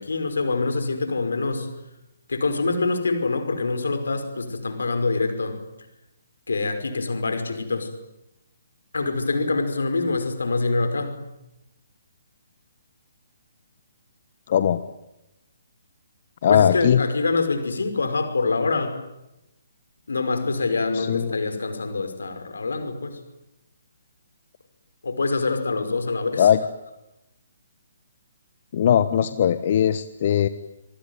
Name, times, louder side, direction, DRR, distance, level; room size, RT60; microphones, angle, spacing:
voice 1, 0.0-1.7 2.3-5.6 6.5-7.9 8.9-11.2 16.5-19.0 20.1-23.2 25.0-26.5, left 3 dB, 65° left, 8 dB, 5.4 m, -25 dB
voice 2, 14.5-14.8 16.4-17.0 20.9-21.4 26.4-26.6 28.7-30.5, left 9 dB, 40° left, 12 dB, 1.3 m, -19 dB
27.0 x 23.5 x 9.5 m, 0.91 s
figure-of-eight pair, 135°, 0 cm